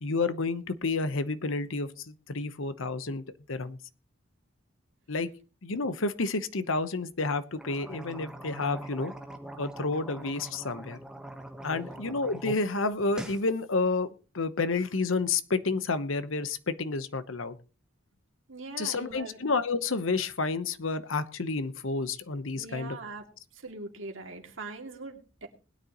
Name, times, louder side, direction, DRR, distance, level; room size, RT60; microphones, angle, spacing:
voice 1, 0.0-3.8 5.1-5.3 5.6-9.1 9.6-11.0 11.6-14.1 14.3-17.6 18.8-23.0, left 3 dB, 75° left, 13 dB, 1.0 m, -30 dB
sound 1, 7.5-12.6 12.9-13.4, right 1 dB, 5° right, 1.2 m, -42 dB
voice 2, 18.5-19.4 22.5-23.2 23.6-25.5, right 3 dB, 70° right, 3 dB, 2.5 m, -41 dB
21.0 x 9.8 x 3.0 m, 0.34 s
head